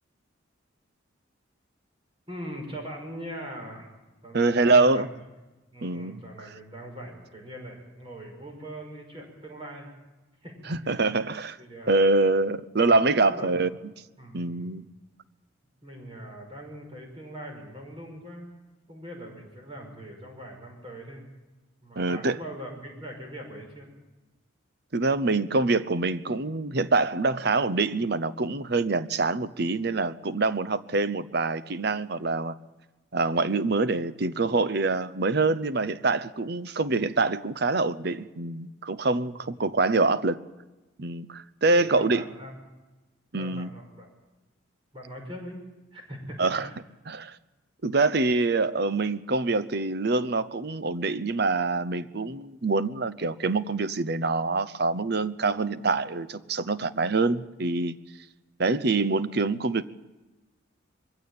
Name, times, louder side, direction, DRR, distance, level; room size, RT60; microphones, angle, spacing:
voice 1, 2.3-3.9 4.2-5.0 5.7-9.9 10.4-11.2 11.6-12.2 13.1-13.6 14.2-14.7 15.8-18.5 18.9-21.3 21.8-23.9 39.3-39.7 41.8-42.5 43.4-44.1 44.9-45.6 45.9-46.8, equal, 25° right, 5.7 m, -41 dB
voice 2, 4.3-5.1 5.8-6.2 10.7-11.6 11.9-13.7 14.3-14.9 22.0-22.4 24.9-32.5 33.1-40.4 41.0-42.2 43.3-43.7 46.4-46.7 47.1-47.4 47.8-58.0 58.6-59.8, right 3 dB, 55° right, 0.8 m, -25 dB
22.0 x 16.0 x 8.8 m
head